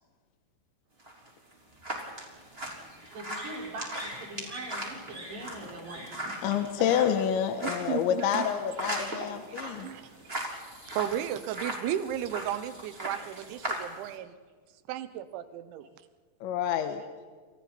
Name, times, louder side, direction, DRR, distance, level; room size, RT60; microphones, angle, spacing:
sound 1, 1.0-14.1, right 1 dB, 15° right, 3.6 m, -39 dB
voice 1, 3.1-6.5 6.8-6.9 9.0-9.6, right 2 dB, 65° right, -1 dB, 7.4 m, -42 dB
voice 2, 6.4-9.9 16.4-17.0, left 9 dB, 80° left, 6 dB, 3.5 m, -28 dB
voice 3, 7.6-8.5 9.8-10.0 10.4-10.5 10.9-14.3 14.9-15.9, right 11 dB, 85° right, 12 dB, 3.4 m, -34 dB
29.5 x 28.0 x 4.4 m, 1.5 s
omnidirectional pair, 5.3 m